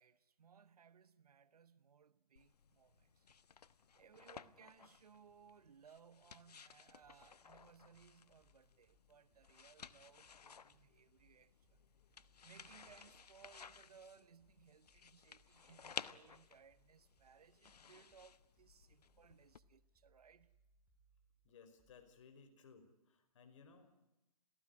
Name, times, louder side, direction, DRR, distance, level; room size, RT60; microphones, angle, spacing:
voice 1, 0.0-3.3 3.6-3.7 3.9-11.8 12.4-20.6, right 7 dB, 70° right, 1.2 m, -64 dB
sound 1, 2.4-19.6, left 6 dB, 75° left, 1.1 m, -56 dB
sound 2, 7.0-22.2, left 1 dB, 10° right, 6.7 m, -76 dB
voice 2, 21.4-24.0, left 5 dB, 50° left, 5.2 m, -62 dB
28.0 x 18.0 x 9.8 m
hypercardioid pair, 135°, 20 cm